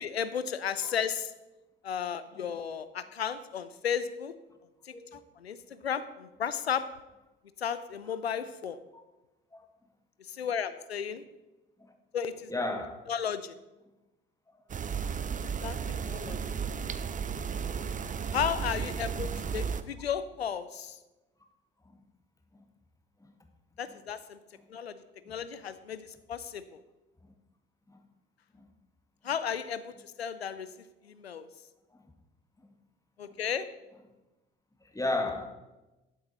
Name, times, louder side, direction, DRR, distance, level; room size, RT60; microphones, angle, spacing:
voice 1, 0.0-1.3 1.8-4.3 4.8-6.9 7.6-8.8 10.3-11.2 12.1-12.5 13.1-13.5 15.6-15.8 16.1-16.4 18.3-21.0 23.8-24.4 24.7-25.0 25.3-26.8 29.2-30.7 31.0-31.5 33.2-33.7, left 8 dB, 90° left, 0.6 m, -34 dB
voice 2, 4.9-5.2 8.9-9.0 9.5-9.7 11.8-11.9 12.5-13.1 15.9-16.0 17.6-17.7 21.9-22.0 25.3-25.4 27.9-28.0 28.5-28.7 34.9-35.5, left 2 dB, 10° left, 1.8 m, -34 dB
sound 1, 14.7-19.8, right 6 dB, 25° right, 0.7 m, -34 dB
13.0 x 7.8 x 4.2 m
figure-of-eight pair, 55°, 30 cm